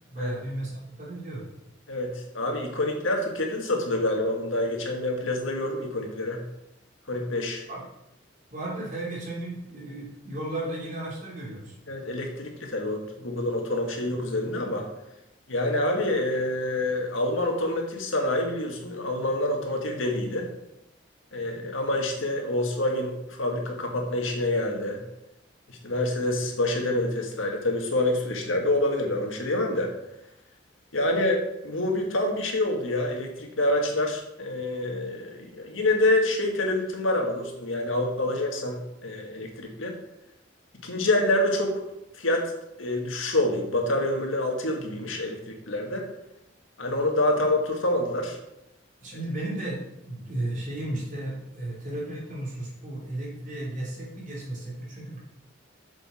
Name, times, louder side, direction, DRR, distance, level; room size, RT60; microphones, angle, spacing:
voice 1, 0.1-0.7 1.0-1.4 7.7-7.9 8.5-11.7 49.0-55.2, right 1 dB, 40° right, -3 dB, 2.9 m, -34 dB
voice 2, 1.9-6.4 7.1-7.6 11.9-14.9 15.5-20.5 21.3-25.0 25.7-29.9 30.9-39.9 40.8-41.8 42.2-42.5 42.8-46.0 46.8-48.4, left 1 dB, 90° left, 2 dB, 1.8 m, -27 dB
7.8 x 7.0 x 4.3 m, 0.86 s
head